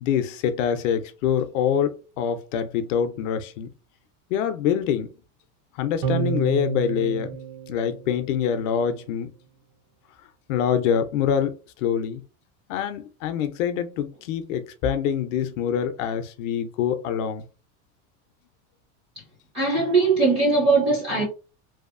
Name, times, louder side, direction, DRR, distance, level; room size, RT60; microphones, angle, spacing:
voice 1, 0.0-3.7 4.3-5.1 5.8-7.3 7.7-9.3 10.5-12.2 12.7-17.5, left 8 dB, 60° left, 0.5 m, -25 dB
sound 1, 6.0-8.6, right 7 dB, 60° right, 0.6 m, -30 dB
voice 2, 19.5-21.2, right 3 dB, 15° right, 0.3 m, -20 dB
2.7 x 2.3 x 2.4 m
supercardioid pair, 170°, 45 cm